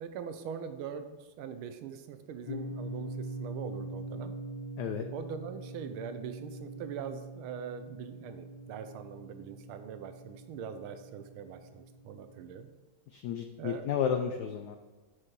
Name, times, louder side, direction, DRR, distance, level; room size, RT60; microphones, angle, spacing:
voice 1, 0.0-4.3 5.1-12.7 13.6-13.9, right 7 dB, 80° right, 9 dB, 1.5 m, -42 dB
sound 1, 2.5-12.6, right 1 dB, 65° left, 1.1 m, -43 dB
voice 2, 13.1-14.8, left 8 dB, 85° left, 6 dB, 0.9 m, -32 dB
7.6 x 6.3 x 4.7 m, 1.3 s
omnidirectional pair, 2.4 m